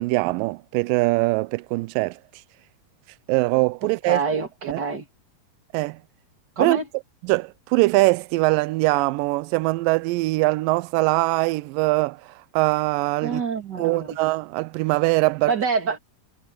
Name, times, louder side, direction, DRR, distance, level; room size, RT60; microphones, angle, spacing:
voice 1, 0.0-2.2 3.3-4.2 4.6-4.8 5.7-6.0 6.6-6.8 7.2-13.4 13.8-15.6, right 22 dB, 80° right, 2.0 m, -22 dB
voice 2, 4.0-5.0 6.6-6.8 13.2-14.2 15.5-16.0, right 5 dB, 30° right, 2.9 m, -26 dB
omnidirectional pair, 4.3 m